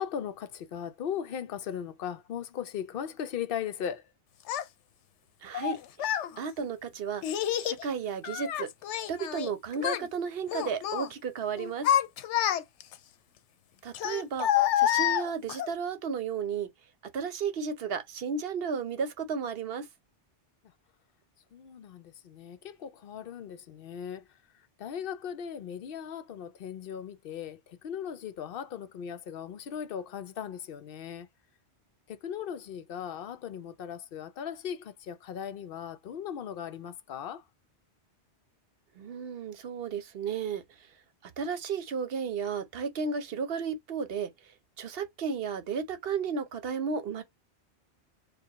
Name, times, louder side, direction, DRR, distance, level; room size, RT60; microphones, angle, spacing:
voice 1, 0.0-4.0 21.5-24.2 24.8-31.3 32.1-37.4, left 8 dB, 60° left, 0.7 m, -38 dB
Child speech kid speaking, 4.5-4.6 5.5-6.3 7.2-7.8 8.2-9.5 9.8-10.1 10.5-11.1 11.6-12.9 13.9-15.7, left 11 dB, 85° left, 0.9 m, -28 dB
voice 2, 5.4-6.1 6.4-7.2 7.6-8.7 9.1-11.9 13.8-14.5 14.8-16.7 17.1-19.9 39.0-40.6 41.4-44.3 44.8-47.2, right 6 dB, 60° right, 0.8 m, -33 dB
4.7 x 2.2 x 3.5 m
omnidirectional pair, 1.2 m